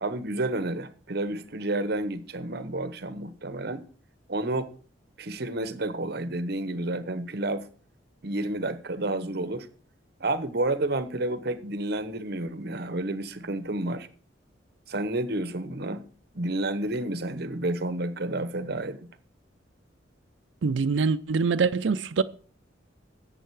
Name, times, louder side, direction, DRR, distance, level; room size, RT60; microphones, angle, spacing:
voice 1, 0.0-3.8 4.3-4.7 5.2-7.7 8.2-9.7 10.2-14.1 14.9-16.0 16.3-19.1, right 2 dB, 55° right, 0.9 m, -30 dB
voice 2, 20.6-22.2, right 5 dB, 70° right, 0.5 m, -24 dB
11.0 x 7.8 x 4.7 m
head